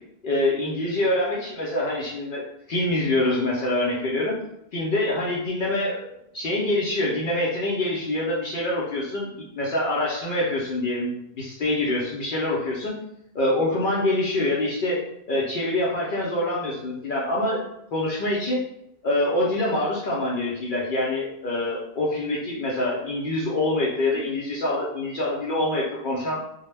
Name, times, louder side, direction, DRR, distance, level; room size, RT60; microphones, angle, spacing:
voice 1, 0.2-4.4 4.7-13.0 13.3-17.6 17.9-18.6 19.0-26.4, left 1 dB, 60° left, -5 dB, 0.6 m, -25 dB
2.1 x 2.0 x 3.1 m, 0.78 s
omnidirectional pair, 1.0 m